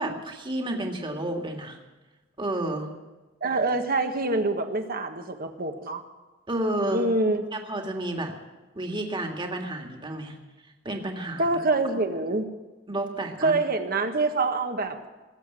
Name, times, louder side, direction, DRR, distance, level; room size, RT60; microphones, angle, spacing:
voice 1, 0.0-1.8 2.4-2.9 6.5-7.1 7.5-8.3 8.8-10.4 10.8-11.5 12.9-13.6, right 1 dB, 25° right, 2 dB, 2.0 m, -30 dB
voice 2, 3.4-6.0 6.9-7.4 11.4-12.5 13.4-15.0, right 2 dB, 50° right, 6 dB, 1.4 m, -25 dB
20.0 x 8.1 x 8.1 m, 1.2 s
head